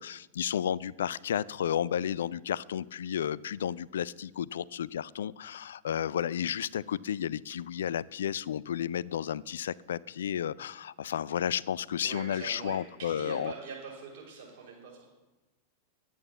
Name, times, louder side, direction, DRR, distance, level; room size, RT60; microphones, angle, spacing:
voice 1, 0.0-13.5, left 9 dB, 65° left, 22 dB, 0.3 m, -32 dB
voice 2, 12.0-15.1, right 4 dB, 55° right, -4 dB, 5.7 m, -43 dB
10.5 x 8.6 x 7.4 m, 1.1 s
figure-of-eight pair, 90°, 0 cm